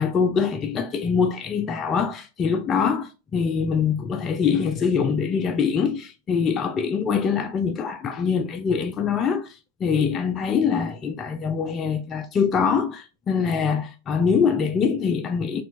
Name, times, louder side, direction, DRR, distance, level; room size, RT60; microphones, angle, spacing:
voice 1, 0.0-9.6 9.8-15.6, left 6 dB, 25° left, 0.4 m, -23 dB
4.3 x 3.3 x 2.5 m
figure-of-eight pair, 90°, 0 cm